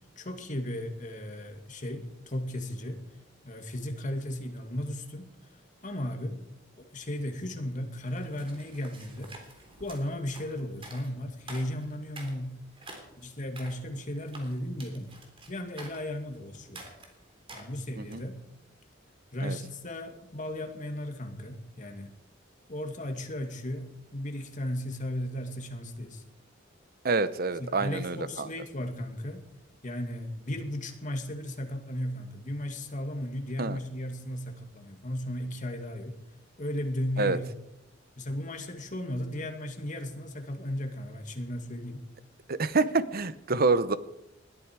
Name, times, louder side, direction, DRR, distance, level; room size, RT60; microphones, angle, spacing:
voice 1, 0.2-3.0 3.4-6.4 6.8-9.4 9.8-12.5 13.2-15.1 15.5-16.9 17.5-18.4 19.3-22.2 22.7-26.2 27.6-29.5 29.8-36.2 36.6-37.5 38.2-42.1, left 1 dB, 40° left, 4 dB, 2.2 m, -35 dB
sound 1, 8.1-18.3, right 2 dB, 30° right, 3.4 m, -49 dB
voice 2, 27.0-28.5 33.6-33.8 37.2-37.4 42.5-44.0, right 3 dB, 50° right, 14 dB, 0.8 m, -27 dB
20.5 x 13.5 x 4.7 m, 0.88 s
head